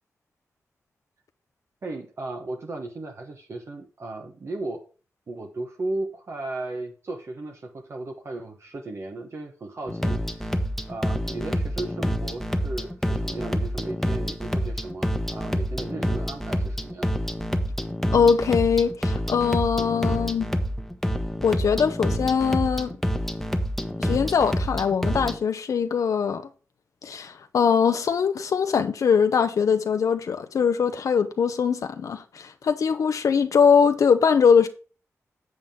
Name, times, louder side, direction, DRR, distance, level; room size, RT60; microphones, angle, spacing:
voice 1, 1.8-4.8 5.3-10.6 10.9-17.2, right 2 dB, 55° right, 1.2 m, -35 dB
sound 1, 9.9-25.4, equal, 5° left, 1.1 m, -27 dB
voice 2, 18.1-20.5 21.4-23.0 24.0-26.4 27.0-34.7, left 6 dB, 75° left, 0.8 m, -22 dB
7.9 x 7.5 x 3.8 m
cardioid pair, 85°, 6 cm